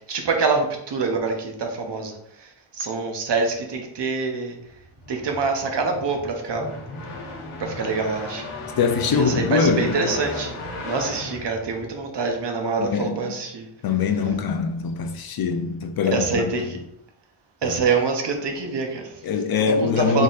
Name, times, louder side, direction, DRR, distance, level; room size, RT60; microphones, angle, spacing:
voice 1, 0.1-2.1 2.8-4.5 5.1-6.7 7.8-8.4 9.1-10.5 10.8-13.6 16.1-16.6 17.6-19.0 19.8-20.2, right 4 dB, 55° right, 0.7 m, -25 dB
sound 1, 4.7-12.3, left 2 dB, 85° left, 1.1 m, -35 dB
voice 2, 8.8-10.1 12.8-13.4 13.8-16.8 17.6-17.8 19.2-20.2, left 6 dB, 50° left, 0.4 m, -23 dB
3.9 x 3.8 x 2.4 m
wide cardioid pair, 165°, 50 cm